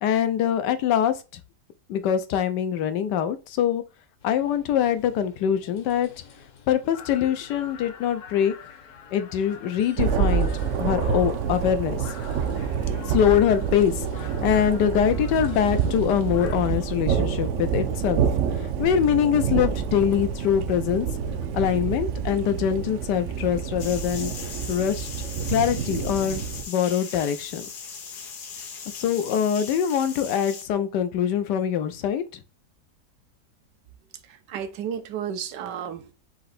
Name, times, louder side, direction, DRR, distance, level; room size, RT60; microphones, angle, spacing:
voice 1, 0.0-1.4 1.9-3.8 4.2-6.1 6.7-8.5 9.1-10.5 10.8-12.1 13.0-18.2 18.8-21.1 21.5-24.3 24.7-25.1 25.5-27.7 28.9-32.2, left 9 dB, 90° left, 1.3 m, -23 dB
sound 1, 4.2-16.6, left 6 dB, 55° left, 1.0 m, -47 dB
Thunder, 10.0-26.6, right 7 dB, 70° right, 0.7 m, -27 dB
sound 2, 23.8-30.6, left 6 dB, 75° left, 1.5 m, -39 dB
voice 2, 34.3-36.1, right 8 dB, 85° right, 1.4 m, -33 dB
4.4 x 2.7 x 4.1 m
omnidirectional pair, 1.8 m